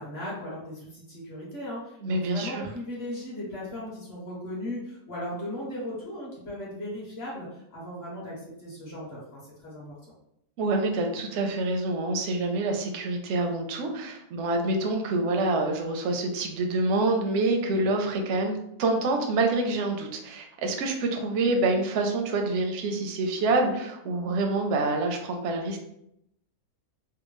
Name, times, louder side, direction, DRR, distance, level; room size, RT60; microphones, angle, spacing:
voice 1, 0.0-9.8, left 1 dB, 45° left, -5 dB, 1.4 m, -37 dB
voice 2, 2.0-2.6 10.6-25.8, right 2 dB, 65° right, 3 dB, 0.8 m, -27 dB
3.5 x 2.1 x 3.0 m, 0.77 s
omnidirectional pair, 1.6 m